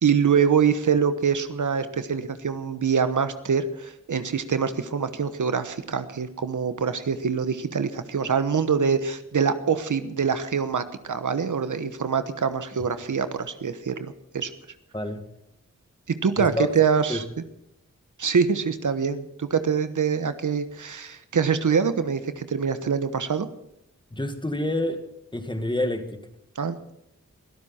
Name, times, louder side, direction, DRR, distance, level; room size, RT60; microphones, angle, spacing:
voice 1, 0.0-14.5 16.2-17.2 18.2-23.5 26.6-26.9, right 6 dB, 75° right, 10 dB, 1.1 m, -24 dB
voice 2, 16.4-16.7 17.1-17.2 24.1-25.0 25.3-26.2, left 1 dB, 15° left, 7 dB, 1.9 m, -27 dB
22.5 x 13.0 x 4.4 m, 0.81 s
wide cardioid pair, 75°, 31 cm